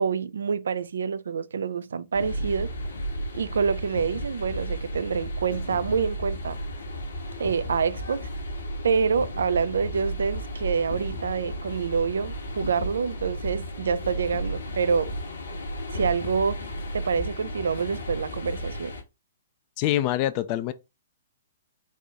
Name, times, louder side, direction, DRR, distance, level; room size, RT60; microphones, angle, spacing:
voice 1, 0.0-2.7 3.3-6.6 7.4-8.3 8.8-15.1 15.9-16.6 16.9-18.9, right 6 dB, 60° right, 0.3 m, -27 dB
sound 1, 2.1-19.0, equal, 65° left, 1.0 m, -34 dB
voice 2, 19.8-20.7, left 14 dB, 35° left, 0.4 m, -25 dB
4.2 x 2.5 x 3.4 m
figure-of-eight pair, 115°, 0 cm